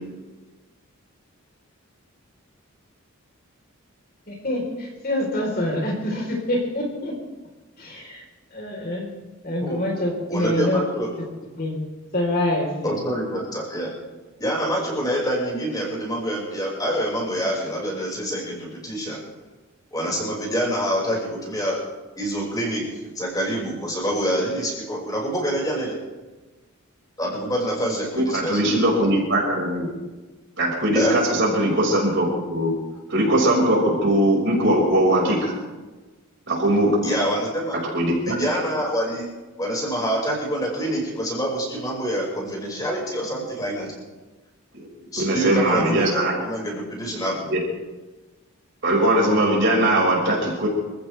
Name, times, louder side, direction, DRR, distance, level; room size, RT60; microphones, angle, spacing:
voice 1, 4.3-4.6 5.0-7.1 7.8-8.2 8.5-9.1 9.4-10.8 11.6-11.8 12.1-13.0, left 1 dB, 45° left, 0 dB, 4.2 m, -25 dB
voice 2, 10.3-11.1 12.8-13.9 14.4-19.2 19.9-21.8 22.2-26.0 27.2-28.6 30.9-31.2 37.0-37.8 38.2-39.3 39.6-43.9 45.1-47.5, equal, 20° left, -3 dB, 5.8 m, -26 dB
voice 3, 28.1-29.9 30.6-32.7 33.1-35.5 36.5-37.0 37.9-38.4 44.7-44.9 45.2-46.3 47.5-47.6 48.8-50.7, right 1 dB, 55° right, -2 dB, 5.8 m, -20 dB
27.0 x 15.0 x 3.5 m, 1.2 s
head